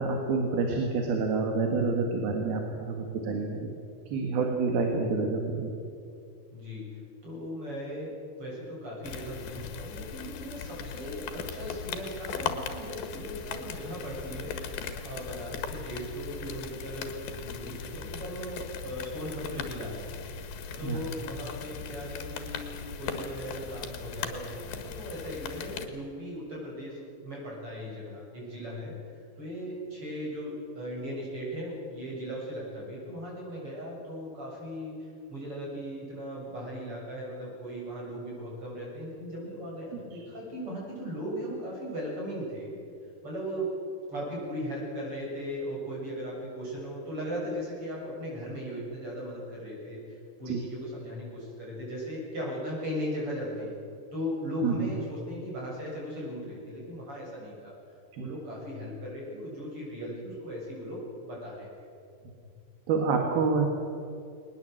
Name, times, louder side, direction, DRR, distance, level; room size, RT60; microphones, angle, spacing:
voice 1, 0.0-3.7 4.1-5.7 20.8-21.0 50.5-50.6 54.6-54.9 58.1-58.3 62.9-63.7, right 4 dB, 85° right, 3 dB, 3.8 m, -28 dB
voice 2, 6.5-8.1 8.4-17.1 17.4-20.1 20.8-29.0 29.4-42.7 43.2-43.7 44.1-53.7 54.1-57.7 58.2-61.9, equal, 35° right, -4 dB, 8.2 m, -38 dB
sound 1, 9.0-25.9, left 6 dB, 85° left, 3.4 m, -39 dB
21.5 x 20.0 x 7.9 m, 2.4 s
omnidirectional pair, 4.2 m